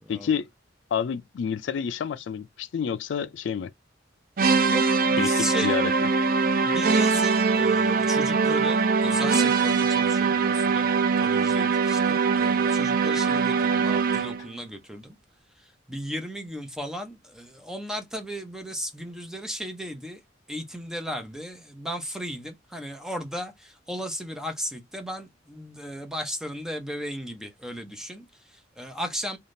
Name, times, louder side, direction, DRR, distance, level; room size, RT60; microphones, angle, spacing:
voice 1, 0.1-0.5 0.9-3.7 5.2-5.9, left 7 dB, 75° left, 0.3 m, -29 dB
sound 1, 4.4-14.5, right 5 dB, 50° right, 0.4 m, -22 dB
voice 2, 4.7-5.7 6.6-10.9 11.2-15.2 15.6-20.2 20.5-29.4, equal, 5° right, 0.6 m, -35 dB
3.4 x 2.3 x 2.5 m
head